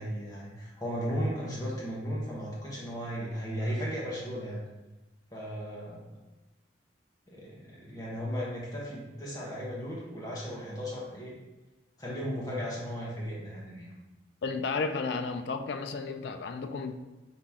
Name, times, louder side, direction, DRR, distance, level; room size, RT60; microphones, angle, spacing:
voice 1, 0.0-4.6 5.3-6.1 7.3-11.3 12.0-13.9, equal, 20° left, -5 dB, 1.1 m, -35 dB
voice 2, 14.4-16.9, left 4 dB, 60° left, 7 dB, 0.3 m, -33 dB
4.3 x 2.9 x 3.5 m, 1.1 s
head